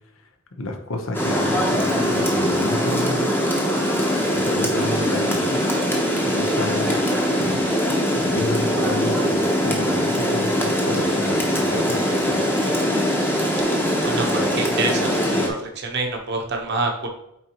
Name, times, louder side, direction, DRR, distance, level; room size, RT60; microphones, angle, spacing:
voice 1, 0.6-3.3 4.3-5.9 6.3-7.1 7.4-7.6 8.1-12.8, left 2 dB, 75° left, 4 dB, 1.0 m, -30 dB
Rain, 1.1-15.5, equal, 10° left, 0.9 m, -22 dB
voice 2, 14.0-17.1, right 3 dB, 50° right, 2 dB, 1.0 m, -26 dB
8.4 x 4.0 x 3.0 m, 0.80 s
head